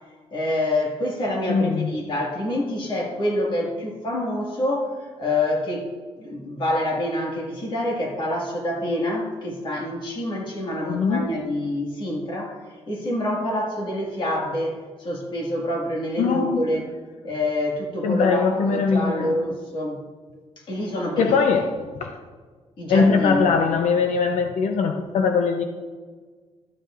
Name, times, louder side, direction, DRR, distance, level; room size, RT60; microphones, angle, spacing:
voice 1, 0.3-12.6 12.9-16.9 17.2-20.0 20.6-21.4 22.8-23.5, left 1 dB, 45° left, -1 dB, 1.8 m, -27 dB
voice 2, 1.5-1.9 10.8-11.3 16.2-16.6 18.0-19.4 21.2-21.7 22.0-22.1 22.9-25.6, left 5 dB, 85° left, 5 dB, 0.6 m, -21 dB
12.5 x 9.2 x 2.5 m, 1.5 s
wide cardioid pair, 175°, 12 cm